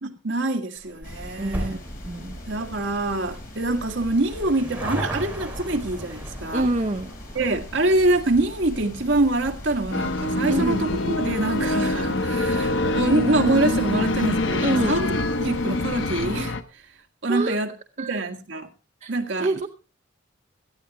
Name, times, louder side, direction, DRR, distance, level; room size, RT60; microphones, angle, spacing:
voice 1, 0.0-1.8 2.5-6.7 7.4-15.1 15.4-16.5 17.2-17.7 18.0-18.7 19.1-19.7, right 2 dB, 70° right, 1.8 m, -25 dB
sound 1, 0.8-13.5 13.8-13.9 14.8-14.9 15.1-15.2 15.4-15.5, right 1 dB, 10° right, 4.0 m, -39 dB
sound 2, 1.0-16.4, equal, 50° left, 4.5 m, -40 dB
voice 2, 1.4-1.8 2.0-2.4 6.5-7.1 10.5-10.9 14.6-15.0 17.3-17.6 18.0-18.2 19.0-19.1 19.4-19.7, right 2 dB, 40° right, 0.8 m, -26 dB
sound 3, 9.9-16.6, left 2 dB, 70° left, 1.0 m, -25 dB
18.0 x 13.0 x 3.0 m
head